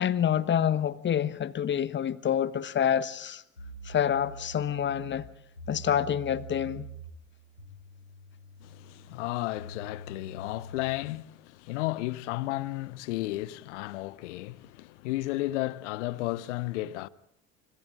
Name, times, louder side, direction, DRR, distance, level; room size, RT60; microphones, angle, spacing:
voice 1, 0.0-3.4 3.8-5.3 5.7-6.9, left 9 dB, 25° left, 1.2 m, -27 dB
sound 1, 3.6-11.1, right 2 dB, 90° left, 4.4 m, -45 dB
voice 2, 8.6-17.1, left 17 dB, 60° left, 0.9 m, -33 dB
30.0 x 27.5 x 3.7 m
figure-of-eight pair, 70°, 41 cm